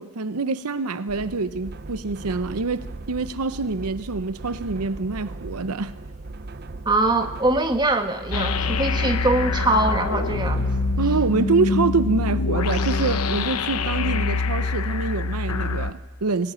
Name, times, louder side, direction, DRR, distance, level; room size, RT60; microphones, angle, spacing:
voice 1, 0.0-5.9 11.0-16.5, right 4 dB, 85° right, 0.8 m, -26 dB
sound 1, 1.1-11.3, right 3 dB, 45° right, 0.7 m, -37 dB
voice 2, 6.8-10.6, right 2 dB, 20° right, 1.4 m, -22 dB
sound 2, 8.3-15.9, left 4 dB, 90° left, 1.0 m, -25 dB
20.5 x 19.0 x 8.8 m
head